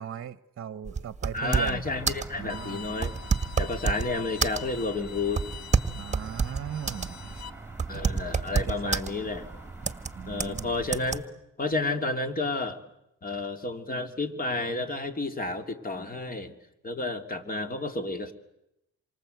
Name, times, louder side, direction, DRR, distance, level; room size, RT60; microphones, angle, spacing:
voice 1, 0.0-1.8 2.4-2.9 5.9-7.5 7.9-8.0 8.6-9.0 10.1-10.7, right 9 dB, 45° right, 14 dB, 1.1 m, -38 dB
sound 1, 0.9-2.3 3.0-4.1 4.4-4.9 5.4-7.1 7.4-7.5 7.8-9.1 9.8-10.1 10.4-10.6 10.9-11.2, right 5 dB, 25° right, 1.7 m, -27 dB
voice 2, 1.3-3.1 3.6-5.5 7.9-9.5 10.3-11.3 11.6-12.8 13.2-16.5 16.8-18.3, left 2 dB, 30° left, 7 dB, 3.0 m, -31 dB
sound 2, 1.8-11.2, right 3 dB, 5° right, 3.8 m, -44 dB
Bowed string instrument, 2.5-7.5, left 9 dB, 60° left, 1.2 m, -44 dB
28.0 x 24.5 x 8.1 m, 0.86 s
cardioid pair, 90°, 30 cm